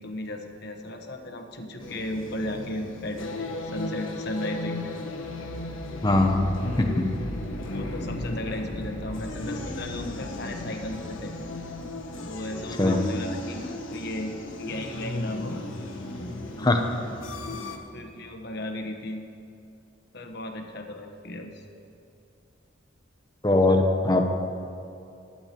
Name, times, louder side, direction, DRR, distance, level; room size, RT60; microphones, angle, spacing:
voice 1, 0.0-5.0 7.6-11.3 12.2-15.7 16.2-16.3 17.9-19.3 20.1-21.6, left 1 dB, 60° left, 4 dB, 1.1 m, -35 dB
sound 1, 1.8-17.8, left 1 dB, 90° left, 1.3 m, -35 dB
voice 2, 6.0-6.4 6.8-7.1 12.8-13.0 16.6-16.8 23.4-24.3, left 2 dB, 20° left, 3 dB, 0.8 m, -21 dB
21.0 x 8.7 x 3.0 m, 2.6 s
head